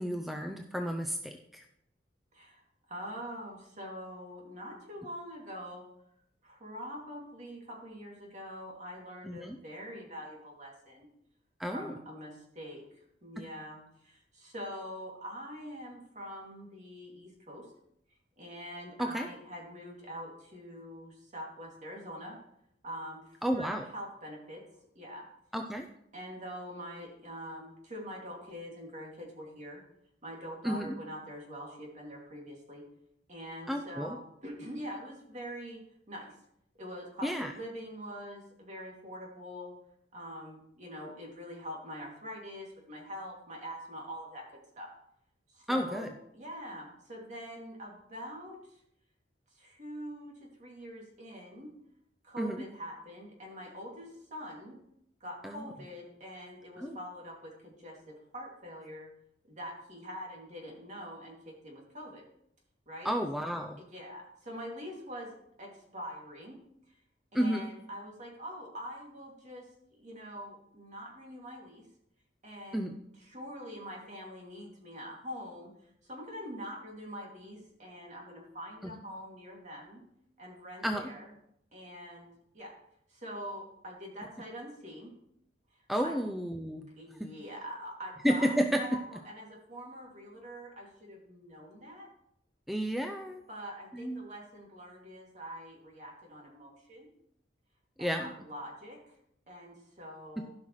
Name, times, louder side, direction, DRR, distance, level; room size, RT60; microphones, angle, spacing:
voice 1, 0.0-1.6 9.2-9.6 11.6-11.9 19.0-19.3 23.4-23.8 25.5-25.9 30.6-31.0 33.7-34.2 37.2-37.5 45.7-46.1 52.4-52.6 55.4-55.7 56.8-57.0 63.0-63.8 67.3-67.7 72.7-73.0 80.8-81.1 85.9-86.9 88.2-88.8 92.7-93.4 93.9-94.2 98.0-98.3, equal, ahead, 4 dB, 0.5 m, -31 dB
voice 2, 2.3-2.6 2.9-5.8 6.4-11.1 11.7-12.8 13.2-17.7 18.4-22.4 22.8-24.6 24.9-25.3 26.1-29.8 30.2-32.8 33.3-35.8 36.1-36.3 36.8-39.7 40.1-44.9 45.5-48.6 49.5-51.7 52.2-54.8 55.2-59.1 59.5-62.2 62.9-63.1 63.8-66.6 66.9-67.0 67.3-69.7 70.0-71.9 72.4-72.9 73.3-75.7 76.0-80.0 80.4-81.3 81.7-82.3 82.5-82.7 83.1-85.1 86.0-86.2 86.9-92.1 93.5-97.1 98.0-99.2 99.5-100.5, equal, 40° right, -1 dB, 2.6 m, -44 dB
15.5 x 5.7 x 3.2 m, 0.75 s
head